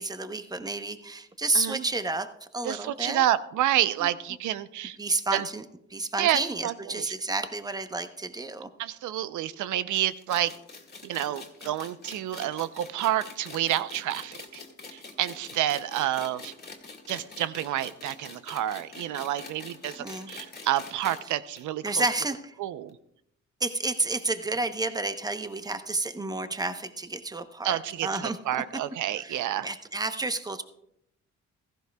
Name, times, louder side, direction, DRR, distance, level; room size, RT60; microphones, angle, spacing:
voice 1, 0.0-3.2 4.0-4.1 5.0-5.6 5.9-8.7 20.0-20.3 21.8-22.6 23.6-28.4 29.2-30.6, right 2 dB, 15° right, 9 dB, 0.8 m, -30 dB
voice 2, 1.5-1.9 2.6-5.0 5.3-5.5 6.2-7.1 8.8-10.5 11.0-14.6 14.9-16.5 17.1-22.0 22.6-23.0 27.6-29.7, right 12 dB, 80° right, 14 dB, 0.6 m, -29 dB
sound 1, 10.0-21.2 21.6-21.7 21.9-22.0 22.9-23.0, left 3 dB, 30° left, 2.2 m, -45 dB
16.0 x 14.5 x 2.3 m, 0.79 s
cardioid pair, 90°, 30 cm